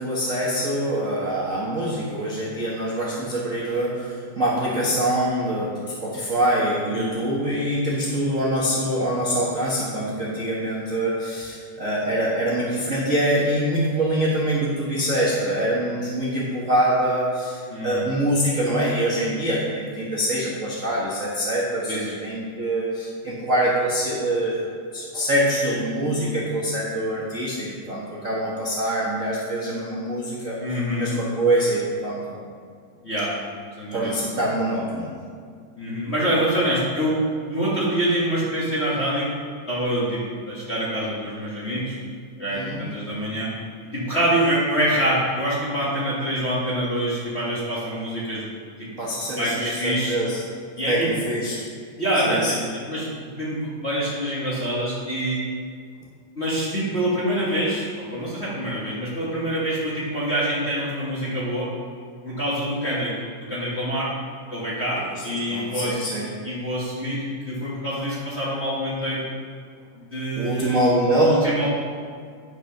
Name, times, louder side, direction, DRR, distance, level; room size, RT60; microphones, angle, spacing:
voice 1, 0.0-24.7 24.9-30.6 30.9-32.4 33.9-35.1 42.5-42.8 49.0-50.4 50.9-51.5 52.2-52.5 65.1-65.2 65.5-66.3 70.3-71.4, right 1 dB, 40° right, -6 dB, 1.1 m, -24 dB
voice 2, 17.7-18.0 21.9-22.2 30.6-31.1 33.0-33.3 33.8-34.2 35.8-39.3 39.7-42.0 42.4-43.5 43.9-48.5 48.8-48.9 49.4-50.2 50.8-51.1 52.0-52.6 52.8-55.4 56.3-61.7 62.2-64.1 64.5-66.2 66.4-69.2 70.1-70.8 71.2-71.7, right 1 dB, 30° left, -8 dB, 1.5 m, -25 dB
10.0 x 6.0 x 5.8 m, 2.1 s
omnidirectional pair, 3.5 m